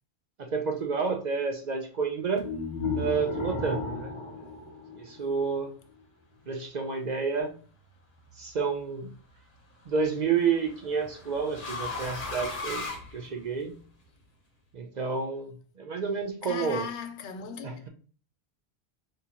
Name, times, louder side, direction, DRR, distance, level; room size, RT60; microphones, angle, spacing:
voice 1, 0.4-2.5 3.0-4.2 4.9-5.7 6.5-7.5 8.4-9.1 9.9-12.9 13.1-13.8 14.7-16.9 17.6-17.9, right 5 dB, 55° right, 0.5 m, -30 dB
sound 1, 2.4-5.5, left 3 dB, 35° left, 0.7 m, -34 dB
sound 2, 7.9-8.4 9.8-13.8, left 3 dB, 55° left, 1.0 m, -38 dB
voice 2, 16.4-17.9, left 5 dB, 90° left, 0.9 m, -37 dB
3.6 x 2.8 x 2.8 m
omnidirectional pair, 1.1 m